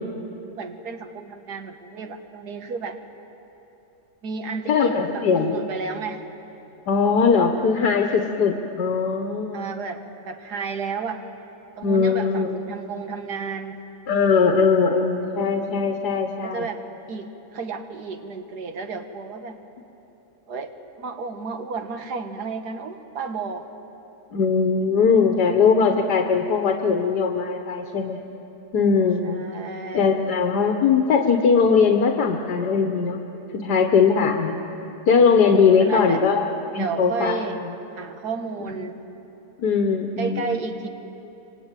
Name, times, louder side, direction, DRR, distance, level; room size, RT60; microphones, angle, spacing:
voice 1, 0.6-3.0 4.2-6.2 9.5-11.2 11.8-13.8 16.4-16.8 17.1-19.6 20.5-23.7 29.2-30.2 35.8-36.2 36.8-37.6 38.0-39.0 40.2-40.9, right 4 dB, 80° right, 5 dB, 2.0 m, -32 dB
voice 2, 4.7-5.5 6.9-9.7 11.8-12.6 14.1-16.7 24.3-28.2 28.7-29.4 29.9-33.2 33.5-34.6 35.1-36.5 36.7-37.4 39.6-40.5, left 5 dB, 85° left, 3 dB, 1.8 m, -20 dB
27.0 x 24.0 x 9.1 m, 3.0 s
omnidirectional pair, 1.7 m